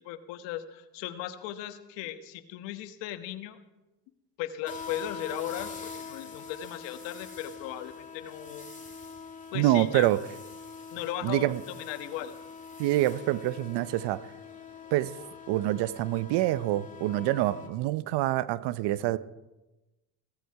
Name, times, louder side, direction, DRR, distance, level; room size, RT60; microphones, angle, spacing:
voice 1, 0.0-3.6 4.4-8.7 9.5-10.1 10.9-12.4, left 12 dB, 75° left, 9 dB, 1.5 m, -37 dB
sound 1, 4.7-17.7, left 5 dB, 15° left, 2.8 m, -44 dB
voice 2, 9.5-10.2 11.2-11.6 12.8-14.3 14.9-15.2 15.5-19.2, right 15 dB, 65° right, 17 dB, 0.8 m, -26 dB
16.5 x 15.0 x 4.8 m, 1.0 s
supercardioid pair, 85°, 44 cm